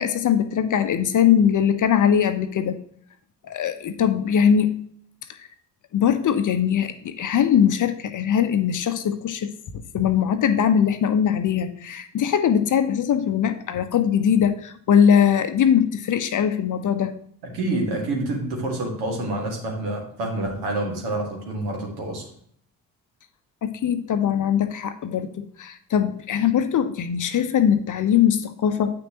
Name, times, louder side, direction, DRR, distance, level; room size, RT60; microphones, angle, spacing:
voice 1, 0.0-2.8 3.4-4.8 5.3-5.5 5.9-9.5 9.9-17.1 23.6-28.9, left 8 dB, 40° left, 9 dB, 0.8 m, -21 dB
voice 2, 17.4-22.3, right 2 dB, 70° right, 0 dB, 2.1 m, -27 dB
8.6 x 6.0 x 2.9 m, 0.64 s
figure-of-eight pair, 45°, 49 cm